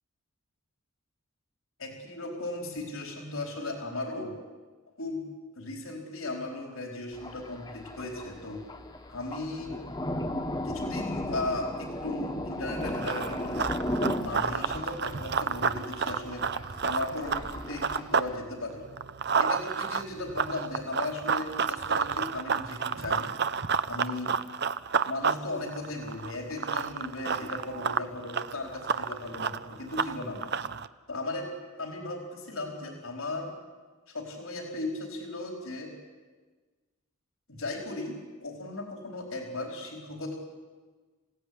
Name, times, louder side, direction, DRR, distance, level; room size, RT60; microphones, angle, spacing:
voice 1, 1.8-4.3 5.0-5.2 5.5-8.6 9.1-9.8 10.6-13.8 14.2-16.4 16.8-18.8 19.4-23.3 23.9-24.3 25.0-30.5 31.1-31.5 31.8-33.5 34.1-35.9 37.5-40.3, left 2 dB, 75° left, 2 dB, 4.7 m, -36 dB
Thunder, 7.1-18.4, left 1 dB, 20° left, 1.6 m, -36 dB
Run, 12.8-18.3 18.7-30.9, right 6 dB, 50° right, 0.7 m, -30 dB
26.5 x 17.0 x 9.8 m, 1.4 s
head